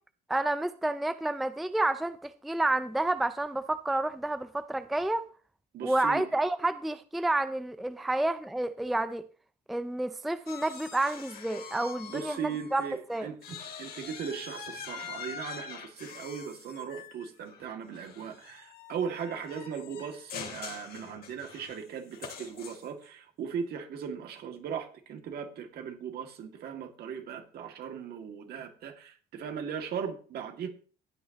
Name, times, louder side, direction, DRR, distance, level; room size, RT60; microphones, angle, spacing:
voice 1, 0.3-5.3 5.8-9.3 9.7-12.8 13.1-13.3, right 2 dB, ahead, 0.4 m, -29 dB
voice 2, 5.7-6.3 12.1-30.7, right 7 dB, 65° right, 2.3 m, -38 dB
sound 1, 10.5-12.8 13.1-23.1, left 7 dB, 60° left, 2.4 m, -44 dB
15.5 x 9.3 x 3.0 m
cardioid pair, 135°, 18 cm